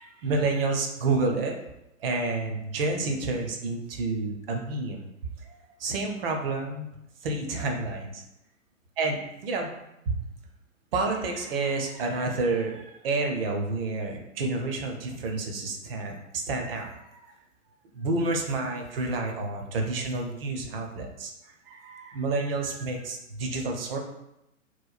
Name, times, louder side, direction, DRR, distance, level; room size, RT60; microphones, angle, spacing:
voice 1, 0.0-1.5 2.0-5.1 5.8-6.9 7.2-8.2 9.0-9.2 9.4-9.7 10.0-10.1 10.9-17.3 17.9-21.3 21.7-24.0, right 3 dB, 45° right, 2 dB, 0.5 m, -29 dB
3.0 x 2.1 x 2.4 m, 0.86 s
hypercardioid pair, 125°, 40 cm